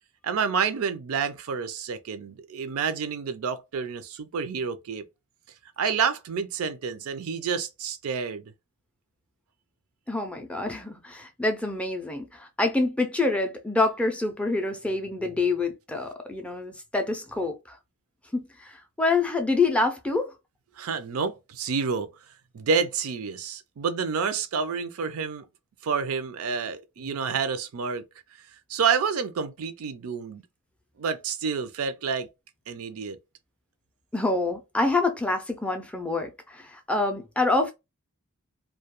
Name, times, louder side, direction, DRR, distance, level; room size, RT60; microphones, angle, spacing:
voice 1, 0.2-5.0 5.8-8.5 20.8-22.1 22.5-25.4 25.8-28.0 28.7-30.4 31.0-32.3 32.7-33.2, right 6 dB, 75° right, 0.4 m, -29 dB
voice 2, 10.1-17.8 18.3-20.4 34.1-37.7, left 3 dB, 5° left, 0.3 m, -26 dB
2.2 x 2.2 x 2.8 m
head